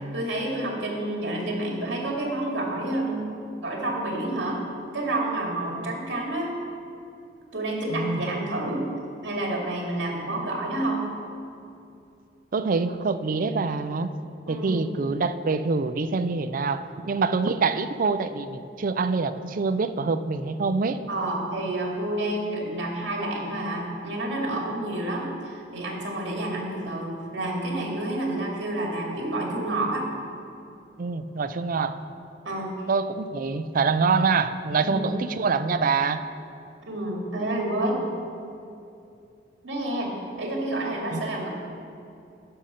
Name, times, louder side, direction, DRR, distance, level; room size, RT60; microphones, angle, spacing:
voice 1, 0.1-3.3 3.5-4.7 4.9-6.5 7.5-8.9 9.2-11.1 14.5-14.8 21.1-30.1 32.4-32.7 34.8-35.1 36.9-38.0 39.6-40.1 40.4-41.5, right 1 dB, 75° right, -1 dB, 2.3 m, -29 dB
voice 2, 7.9-8.2 12.5-14.1 14.5-21.0 31.0-32.0 32.9-36.2 41.1-41.2, right 4 dB, 50° right, 11 dB, 0.4 m, -25 dB
10.0 x 6.6 x 5.7 m, 2.6 s
head